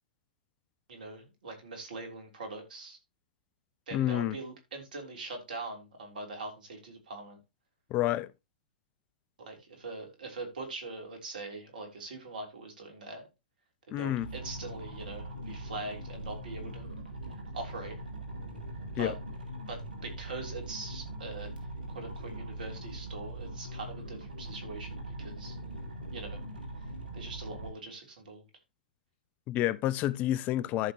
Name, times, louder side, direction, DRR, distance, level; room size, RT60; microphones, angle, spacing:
voice 1, 0.9-3.0 3.9-7.4 9.4-13.2 13.9-16.9 17.5-18.0 19.0-19.1 19.7-21.5 21.9-25.6 26.1-26.4 27.1-28.4, right 3 dB, 70° right, 3.5 m, -42 dB
voice 2, 3.9-4.4 7.9-8.3 13.9-14.3 19.0-19.1 29.5-30.9, left 13 dB, 35° left, 0.4 m, -29 dB
sound 1, 14.2-27.7, right 1 dB, 85° right, 2.6 m, -41 dB
14.0 x 5.7 x 2.9 m
figure-of-eight pair, 110°, 5 cm